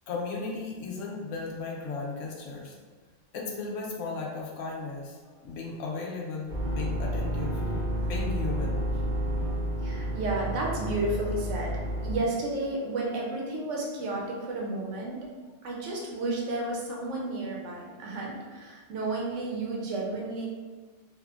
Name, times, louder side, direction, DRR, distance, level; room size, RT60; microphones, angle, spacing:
voice 1, 0.1-2.8 3.3-5.2 5.4-7.6 8.0-8.8, left 4 dB, 80° left, -1 dB, 0.9 m, -35 dB
sound 1, 6.5-12.2, equal, 45° right, 0.7 m, -30 dB
voice 2, 9.8-15.3 15.6-20.5, right 2 dB, 75° right, -2 dB, 1.0 m, -32 dB
2.8 x 2.5 x 2.4 m, 1.4 s
omnidirectional pair, 1.3 m